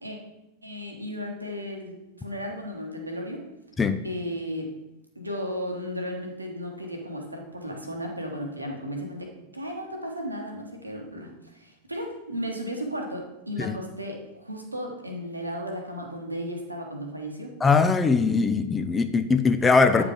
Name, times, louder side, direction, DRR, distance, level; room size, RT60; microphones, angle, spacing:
voice 1, 0.6-3.4 4.0-4.7 5.1-17.5 20.0-20.1, equal, 85° right, 1 dB, 1.3 m, -35 dB
voice 2, 17.6-20.0, left 4 dB, 15° left, 8 dB, 0.5 m, -21 dB
8.8 x 4.9 x 3.7 m, 0.93 s
figure-of-eight pair, 90°, 0 cm